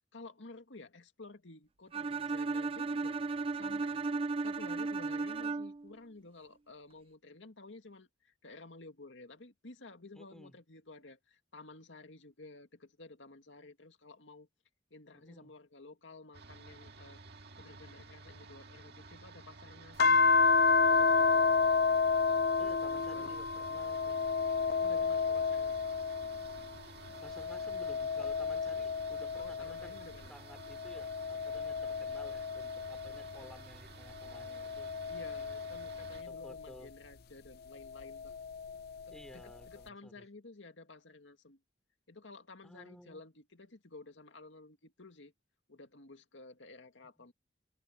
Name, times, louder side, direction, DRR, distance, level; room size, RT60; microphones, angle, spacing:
voice 1, 0.1-4.0 4.4-14.5 14.9-17.2 17.6-20.3 20.8-21.5 23.1-23.4 24.8-25.9 29.4-30.3 35.1-38.3 39.1-41.6 42.1-45.3 45.7-47.3, left 2 dB, 90° left, 2.1 m, -53 dB
Bowed string instrument, 1.9-5.9, right 3 dB, 30° right, 0.5 m, -35 dB
voice 2, 10.1-10.6 15.1-15.5 22.6-24.3 27.2-30.0 30.3-34.9 36.2-36.9 39.1-40.3 42.6-43.2 47.1-47.3, equal, 5° left, 3.3 m, -55 dB
sound 1, 16.3-36.2, right 3 dB, 60° right, 2.1 m, -52 dB
sound 2, 20.0-26.7 27.2-30.1 30.7-33.4 34.2-36.6 38.0-39.0, left 4 dB, 55° left, 0.6 m, -31 dB
head